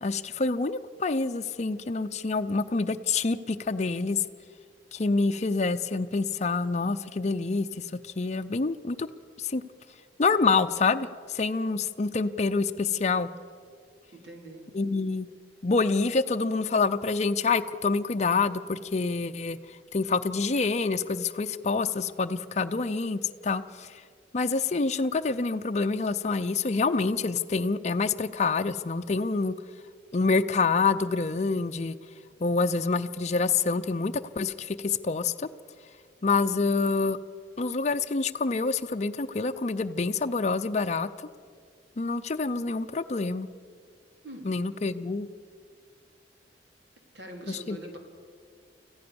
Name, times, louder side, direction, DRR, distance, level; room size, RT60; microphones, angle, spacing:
voice 1, 0.0-4.2 4.9-9.1 9.4-9.6 10.2-13.3 14.7-15.3 15.6-19.6 19.9-23.9 24.3-29.6 30.1-32.0 32.4-35.5 36.2-37.2 37.6-41.1 42.0-43.5 44.4-45.3 47.5-47.8, left 4 dB, 40° left, 7 dB, 0.6 m, -27 dB
voice 2, 14.1-14.7 44.2-44.5 47.1-48.0, right 1 dB, 75° right, 2 dB, 3.7 m, -43 dB
25.0 x 15.0 x 7.0 m, 2.1 s
head